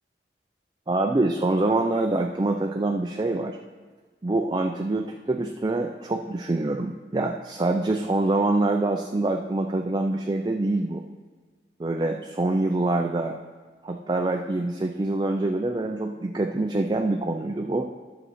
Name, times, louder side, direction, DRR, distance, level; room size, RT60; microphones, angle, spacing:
voice 1, 0.9-3.6 4.2-11.0 11.8-13.4 13.8-17.9, right 2 dB, 25° right, 3 dB, 0.4 m, -25 dB
11.0 x 6.8 x 4.2 m, 1.4 s
head